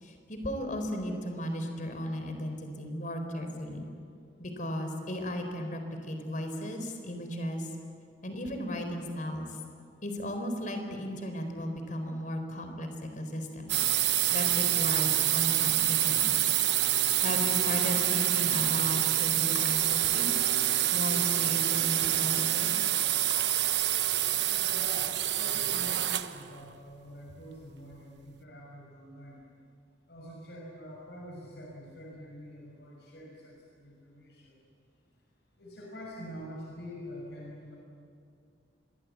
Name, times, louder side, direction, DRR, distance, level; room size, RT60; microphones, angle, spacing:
voice 1, 0.0-3.9 4.4-7.7 8.2-9.5 10.0-13.7 14.3-16.6 17.2-20.3 20.9-22.7, equal, 50° left, 5 dB, 4.2 m, -35 dB
sound 1, 13.7-26.4, right 13 dB, 75° right, 1.1 m, -27 dB
Shatter, 15.9-16.6 17.2-17.3 19.5-20.3 23.3-24.0, left 4 dB, 85° left, 5.9 m, -47 dB
voice 2, 24.4-29.4 30.1-34.7 35.6-37.8, equal, 70° left, -2 dB, 6.1 m, -45 dB
27.5 x 22.5 x 8.5 m, 2.4 s
head